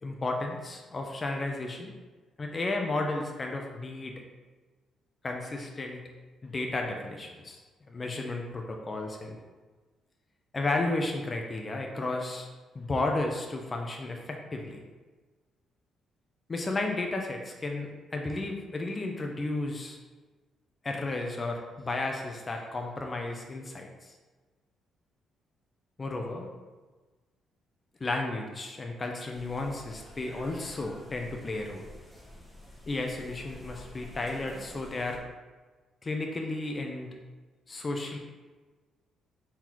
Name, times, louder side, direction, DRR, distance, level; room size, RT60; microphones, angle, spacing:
voice 1, 0.0-1.9 2.4-4.2 5.2-6.0 6.4-7.6 7.9-9.4 10.5-12.5 12.7-14.8 16.5-20.0 20.8-24.1 26.0-26.5 28.0-31.9 32.9-35.2 36.0-37.1 37.7-38.2, left 2 dB, 30° left, 2 dB, 0.6 m, -33 dB
sound 1, 29.3-35.2, left 1 dB, 5° left, 0.9 m, -49 dB
4.3 x 3.9 x 3.0 m, 1.3 s
cardioid pair, 90°, 0 cm